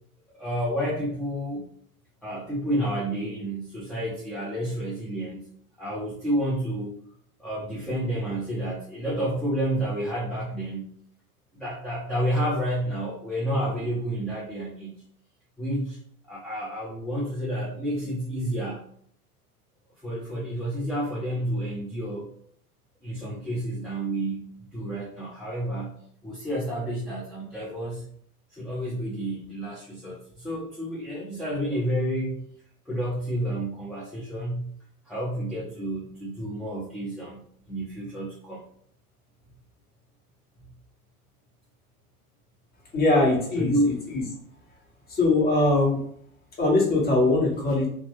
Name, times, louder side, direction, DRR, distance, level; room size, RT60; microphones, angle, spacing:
voice 1, 0.3-1.7 2.2-5.4 5.8-7.0 7.4-10.9 11.5-14.9 15.6-16.0 16.3-18.8 20.0-22.3 23.0-26.0 26.2-28.0 28.5-32.4 32.9-34.7 35.1-38.6 43.6-43.9, right 1 dB, ahead, -8 dB, 0.5 m, -30 dB
voice 2, 42.9-43.7 44.1-44.2 45.1-46.0 46.6-47.9, left 2 dB, 20° left, -3 dB, 1.2 m, -21 dB
2.8 x 2.2 x 3.1 m, 0.62 s
figure-of-eight pair, 85°, 46 cm